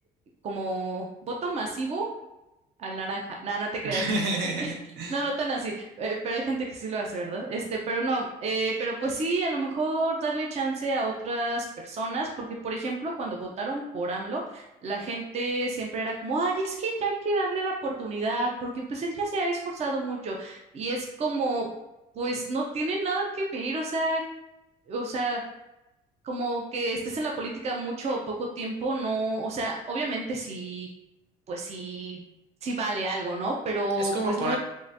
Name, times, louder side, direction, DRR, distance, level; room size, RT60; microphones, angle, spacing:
voice 1, 0.4-2.1 2.8-4.0 4.6-4.7 5.1-21.7 22.1-24.2 24.9-25.4 26.2-30.9 31.5-32.2 32.6-34.6, right 2 dB, 40° right, 0 dB, 0.5 m, -30 dB
voice 2, 3.8-5.2 34.0-34.6, right 2 dB, 75° right, 0 dB, 0.8 m, -29 dB
3.6 x 2.5 x 2.6 m, 0.95 s
cardioid pair, 110°, 17 cm